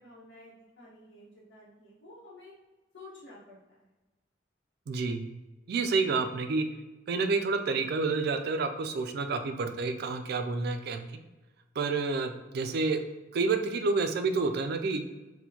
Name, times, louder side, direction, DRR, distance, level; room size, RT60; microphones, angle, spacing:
voice 1, 0.0-2.5 2.9-3.9, left 2 dB, 65° left, -11 dB, 1.0 m, -51 dB
voice 2, 4.9-5.3 5.7-6.7 7.1-11.0 11.8-13.0 13.3-15.0, right 4 dB, 55° right, 7 dB, 0.3 m, -29 dB
4.3 x 2.2 x 2.8 m, 1.1 s
head